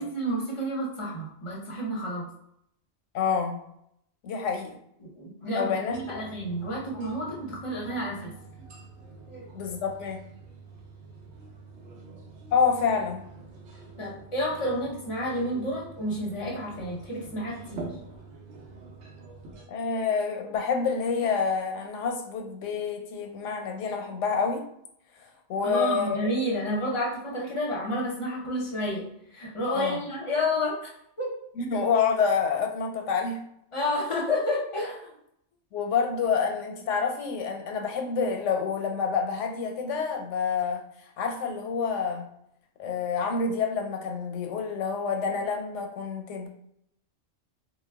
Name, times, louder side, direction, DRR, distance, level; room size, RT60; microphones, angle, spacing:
voice 1, 0.0-2.3 5.0-8.4 9.3-9.5 14.0-18.0 25.6-30.9 31.2-31.3 33.7-35.1, left 1 dB, 35° left, -3 dB, 0.6 m, -30 dB
voice 2, 3.1-3.6 4.2-4.7 5.5-6.2 9.5-10.2 12.5-13.3 19.7-24.6 25.5-26.2 29.7-30.0 31.6-33.4 35.7-40.9 41.2-42.2 42.8-46.5, left 5 dB, 90° left, 4 dB, 0.9 m, -28 dB
sound 1, 5.9-19.6, right 3 dB, 75° right, 0.9 m, -47 dB
2.2 x 2.1 x 3.3 m, 0.73 s
omnidirectional pair, 1.2 m